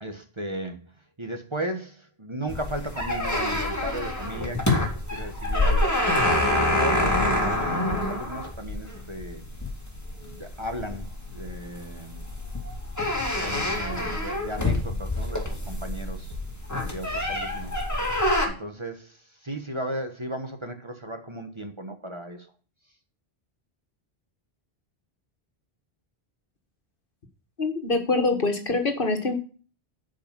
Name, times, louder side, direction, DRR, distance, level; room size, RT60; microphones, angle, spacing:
voice 1, 0.0-0.8 1.2-6.4 6.7-9.5 10.2-12.2 13.4-16.4 16.8-17.8 18.4-22.5, right 1 dB, 30° right, 6 dB, 1.3 m, -36 dB
sound 1, 2.5-18.5, left 1 dB, 15° left, 2.5 m, -27 dB
voice 2, 27.6-29.3, left 3 dB, 55° left, 5 dB, 1.8 m, -24 dB
11.5 x 5.3 x 5.4 m, 0.38 s
omnidirectional pair, 1.1 m